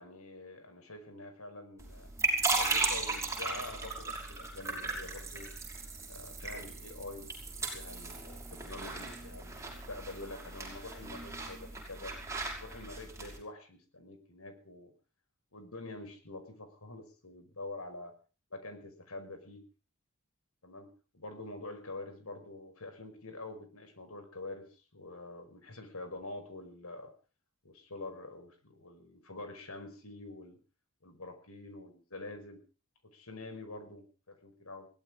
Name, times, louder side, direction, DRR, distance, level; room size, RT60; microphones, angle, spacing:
voice 1, 0.0-2.1 2.5-5.5 6.0-7.3 7.6-12.2 12.6-14.9 15.5-18.1 18.5-19.6 20.6-20.9 21.1-27.1 27.6-30.6 31.0-32.6 33.1-34.9, left 2 dB, 80° left, 7 dB, 5.3 m, -46 dB
sound 1, 1.8-13.4, right 3 dB, 15° right, 5.9 m, -36 dB
22.0 x 17.0 x 3.7 m, 0.36 s
head